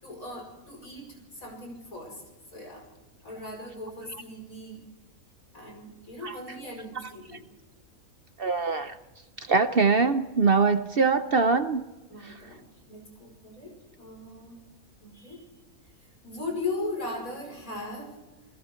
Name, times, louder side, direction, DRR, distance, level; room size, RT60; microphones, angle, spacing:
voice 1, 0.0-2.2 2.5-2.9 3.2-4.8 5.5-7.4 12.1-14.6 15.0-15.4 16.0-18.2, left 2 dB, 75° left, 1 dB, 6.0 m, -38 dB
voice 2, 8.4-8.9 9.5-11.8, right 4 dB, 50° right, 9 dB, 0.9 m, -23 dB
29.5 x 19.5 x 4.5 m, 1.1 s
omnidirectional pair, 1.5 m